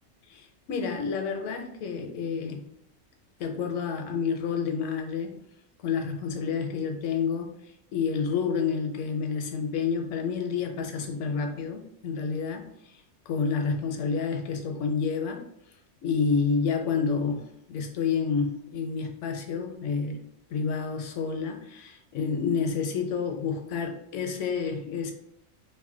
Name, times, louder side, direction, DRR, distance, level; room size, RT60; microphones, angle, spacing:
voice 1, 0.3-2.7 3.4-5.4 5.8-7.6 7.9-12.7 13.3-15.4 16.0-20.2 20.5-25.1, left 5 dB, 75° left, 4 dB, 0.9 m, -29 dB
2.7 x 2.1 x 3.6 m, 0.75 s
omnidirectional pair, 1.3 m